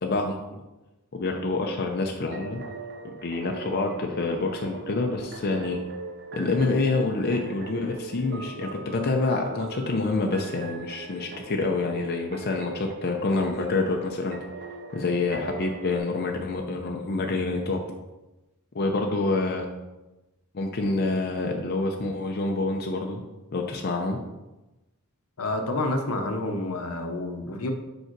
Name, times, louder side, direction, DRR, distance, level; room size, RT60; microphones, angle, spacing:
voice 1, 0.0-0.4 1.1-2.6 3.2-5.8 6.3-14.4 14.9-17.8 18.7-19.6 20.5-23.2 23.5-24.2, left 3 dB, 45° left, 2 dB, 0.6 m, -27 dB
sound 1, 2.3-16.0, right 3 dB, 50° right, 0.6 m, -40 dB
voice 2, 25.4-27.7, left 2 dB, 75° left, 5 dB, 0.9 m, -29 dB
5.3 x 4.9 x 4.6 m, 1.0 s
head